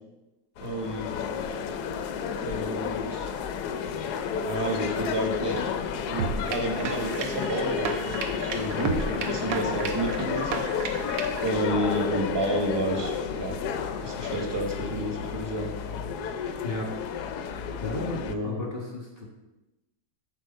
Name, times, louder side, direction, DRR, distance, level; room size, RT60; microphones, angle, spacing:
sound 1, 0.6-18.3, left 7 dB, 70° left, 1.1 m, -31 dB
voice 1, 0.6-1.1 2.4-3.3 4.4-5.6 6.0-10.7 11.4-13.6 14.0-15.7 18.1-18.6, right 1 dB, 20° right, 2 dB, 0.7 m, -30 dB
sound 2, 6.2-11.5, right 5 dB, 90° right, 1.5 m, -33 dB
voice 2, 16.6-16.9 17.8-19.3, left 1 dB, 35° left, -2 dB, 1.6 m, -34 dB
7.9 x 4.5 x 5.4 m, 1.0 s
omnidirectional pair, 1.9 m